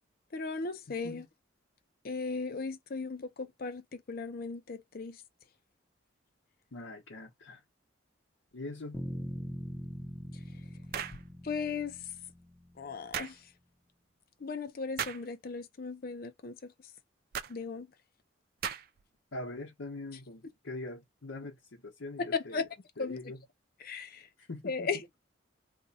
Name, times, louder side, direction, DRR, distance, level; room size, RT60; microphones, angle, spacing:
voice 1, 0.3-1.3 2.0-5.2 11.4-12.0 12.8-13.5 14.4-16.7 17.5-17.9 22.3-22.7 23.0-23.2 23.8-24.3 24.6-25.0, left 4 dB, 50° left, 0.5 m, -36 dB
voice 2, 6.7-7.6 8.5-9.0 19.3-22.6 23.0-23.4 24.4-24.9, left 2 dB, 85° left, 0.9 m, -43 dB
sound 1, 8.9-13.0, equal, 5° left, 0.7 m, -42 dB
sound 2, 10.9-11.2 13.1-13.4 15.0-15.3 17.3-17.5 18.6-19.0, right 8 dB, 50° right, 0.3 m, -36 dB
2.6 x 2.2 x 3.9 m
head